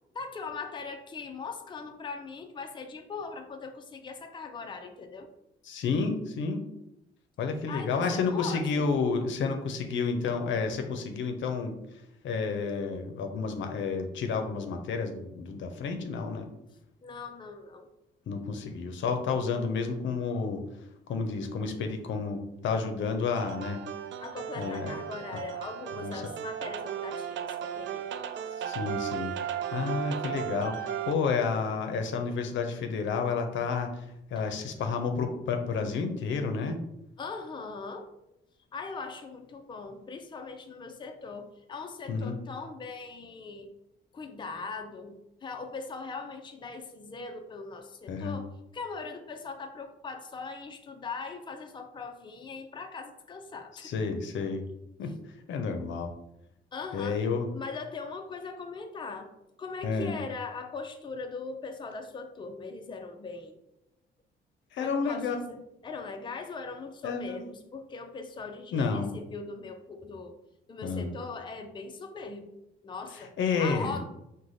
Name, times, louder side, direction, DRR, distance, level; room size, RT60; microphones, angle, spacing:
voice 1, 0.1-5.3 7.7-8.9 17.0-17.9 24.2-28.1 34.4-34.5 37.2-38.1 38.7-43.7 44.1-53.9 55.0-55.1 56.7-57.2 57.5-59.3 59.6-63.6 64.8-70.4 70.7-72.6 72.8-73.3 73.6-74.0, left 4 dB, 25° left, 4 dB, 0.5 m, -40 dB
voice 2, 5.6-6.6 7.4-16.5 18.3-20.6 21.1-23.8 24.6-24.9 26.0-26.2 28.6-36.8 42.1-42.4 48.1-48.4 53.8-54.6 55.0-55.1 55.5-56.1 56.9-57.5 59.8-60.2 64.7-65.4 67.0-67.4 68.7-69.1 70.8-71.1 73.1-74.0, left 5 dB, 70° left, 5 dB, 0.6 m, -30 dB
sound 1, 23.3-31.1, right 9 dB, 70° right, 0.4 m, -35 dB
4.8 x 2.2 x 4.0 m, 0.83 s
cardioid pair, 90°, 20 cm